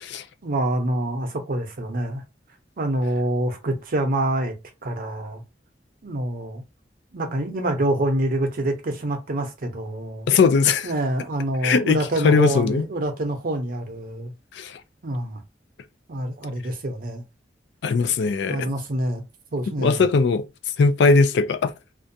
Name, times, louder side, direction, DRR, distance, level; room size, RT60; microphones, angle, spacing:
voice 1, 0.4-2.2 2.8-4.5 4.8-5.4 6.0-6.6 7.1-10.3 10.8-14.3 15.0-15.4 16.1-17.2 18.4-19.2 19.5-20.0, right 1 dB, 55° right, 0.6 m, -26 dB
voice 2, 10.3-10.9 11.6-12.8 14.5-14.8 17.8-18.7 19.8-20.5 20.8-21.7, left 4 dB, 70° left, 0.3 m, -19 dB
2.5 x 2.2 x 2.6 m
head